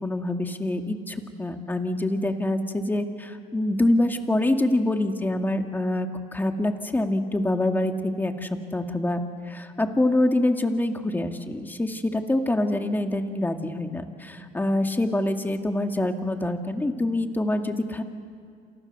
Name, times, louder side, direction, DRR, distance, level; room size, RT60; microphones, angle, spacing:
voice 1, 0.0-18.0, left 1 dB, 10° left, 5 dB, 2.1 m, -25 dB
28.5 x 28.0 x 6.8 m, 2.3 s
cardioid pair, 110°, 17 cm